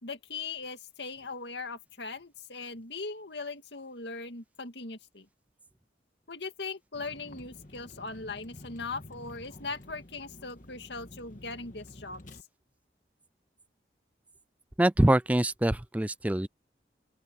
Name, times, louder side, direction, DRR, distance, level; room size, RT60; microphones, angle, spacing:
voice 1, 0.0-5.3 6.3-12.2, left 4 dB, 80° left, 2.1 m, -39 dB
Vehicle, 6.9-12.4, left 1 dB, 45° left, 1.8 m, -50 dB
voice 2, 14.8-16.5, right 1 dB, 10° right, 0.3 m, -24 dB
open air
head